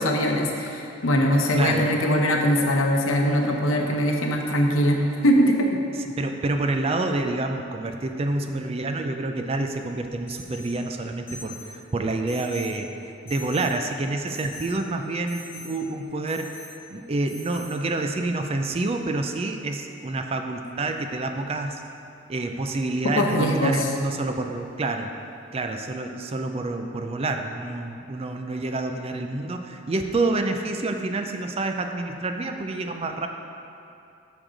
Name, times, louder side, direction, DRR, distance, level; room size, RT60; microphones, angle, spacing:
voice 1, 0.0-5.8 23.1-23.9, equal, 75° left, 2 dB, 0.9 m, -21 dB
voice 2, 1.5-1.9 5.9-16.6 16.9-21.8 22.3-25.1 25.5-33.3, right 2 dB, 30° right, 5 dB, 0.4 m, -28 dB
Alarm, 10.3-10.8 11.3-11.7 12.3-12.8 13.3-13.7 14.3-14.7 15.3-15.7 16.3-16.7 17.3-17.7, left 1 dB, 10° left, 2.0 m, -42 dB
6.4 x 6.3 x 5.0 m, 2.7 s
head